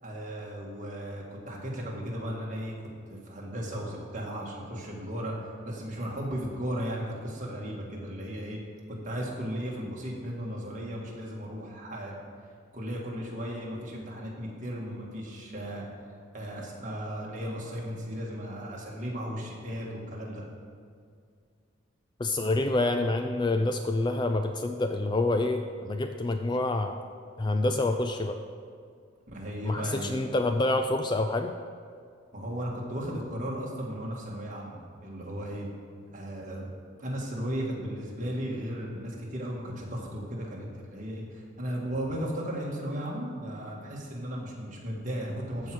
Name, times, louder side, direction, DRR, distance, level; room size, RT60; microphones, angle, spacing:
voice 1, 0.0-2.7 3.1-8.6 9.0-12.2 12.7-15.8 16.3-20.4 29.3-30.1 32.3-35.7 36.1-36.7 37.0-45.7, equal, 35° right, -3 dB, 1.8 m, -35 dB
voice 2, 22.2-27.0 27.4-28.4 29.6-31.5, left 2 dB, 20° left, 6 dB, 0.3 m, -27 dB
14.5 x 4.8 x 6.1 m, 2.2 s
head